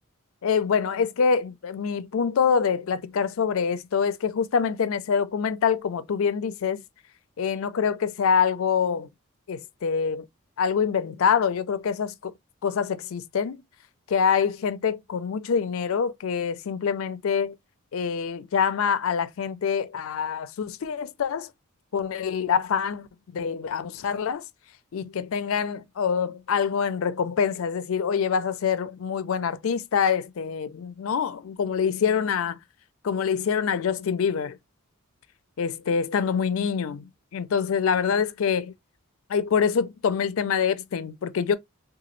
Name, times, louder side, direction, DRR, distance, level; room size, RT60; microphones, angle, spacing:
voice 1, 0.4-6.8 7.4-9.1 9.5-10.3 10.6-12.3 12.6-13.6 14.1-17.5 17.9-21.5 21.9-23.1 23.3-24.4 24.9-32.6 33.0-34.6 35.6-38.7 39.3-41.6, left 6 dB, 65° left, 0.4 m, -25 dB
2.8 x 2.3 x 3.0 m
head